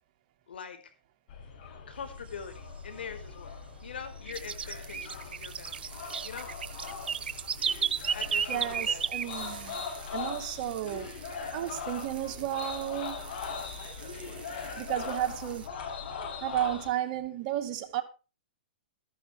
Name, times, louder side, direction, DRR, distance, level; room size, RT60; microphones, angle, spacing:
voice 1, 0.5-0.8 1.9-6.5 8.1-9.1, left 6 dB, 85° left, 4.5 m, -43 dB
sound 1, 1.3-16.9, left 5 dB, 55° left, 7.6 m, -41 dB
sound 2, 2.0-3.5 3.9-9.9 10.2-10.3 10.6-11.2 11.5-12.6 12.9-13.0 13.4-13.5 14.0-15.1 15.6-16.9, right 7 dB, 90° right, 1.1 m, -33 dB
sound 3, 4.3-15.7, right 9 dB, 65° right, 3.9 m, -50 dB
voice 2, 8.5-9.8 10.1-11.1 11.5-13.3 14.8-15.7 16.4-18.0, right 12 dB, 45° right, 2.1 m, -33 dB
14.5 x 10.5 x 4.9 m
hypercardioid pair, 140°, 5 cm